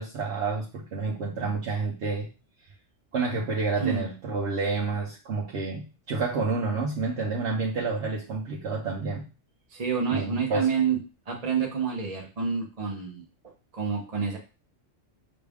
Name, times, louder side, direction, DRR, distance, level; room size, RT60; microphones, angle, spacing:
voice 1, 0.0-2.3 3.1-9.3 10.1-10.7, right 4 dB, 65° right, -3 dB, 1.0 m, -29 dB
voice 2, 9.7-11.0 11.3-13.2 13.7-14.4, right 6 dB, 35° right, -1 dB, 0.7 m, -28 dB
6.1 x 2.3 x 3.4 m, 0.32 s
omnidirectional pair, 1.3 m